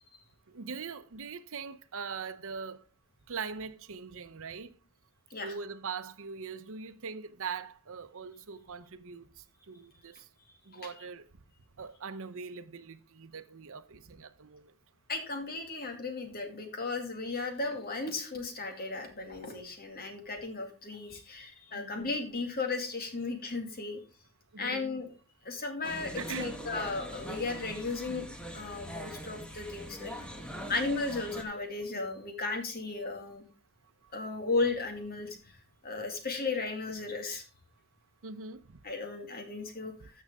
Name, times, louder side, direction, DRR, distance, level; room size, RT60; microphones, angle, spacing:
voice 1, 0.5-2.8 3.3-4.7 5.4-9.3 9.7-10.2 10.7-11.2 11.8-14.7 21.7-22.1 24.5-24.9 26.2-26.6 38.2-38.8, right 5 dB, 65° right, 0.8 m, -41 dB
voice 2, 15.1-24.0 24.6-25.1 25.4-28.3 28.5-30.1 30.7-33.4 34.1-35.6 35.8-37.4 38.8-39.9, left 3 dB, 45° left, 2.1 m, -35 dB
sound 1, 25.8-31.4, equal, 5° left, 1.5 m, -42 dB
13.5 x 6.4 x 3.6 m
head